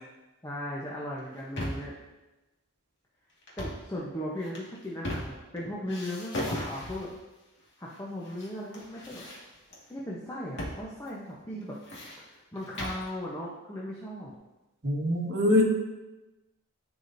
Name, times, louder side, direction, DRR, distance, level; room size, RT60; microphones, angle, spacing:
voice 1, 0.4-2.0 3.6-7.1 7.8-9.2 9.9-11.7 12.2-14.3, equal, 15° left, -5 dB, 0.9 m, -37 dB
sound 1, 1.2-2.0 3.4-3.9 4.4-5.6 5.9-7.2 7.9-8.5 8.7-9.8 10.6-10.8 11.1-11.2 11.6-13.1, left 1 dB, 55° left, 2.0 m, -37 dB
voice 2, 14.8-15.6, left 1 dB, 50° right, -2 dB, 1.6 m, -23 dB
13.5 x 4.9 x 2.7 m, 1.1 s
head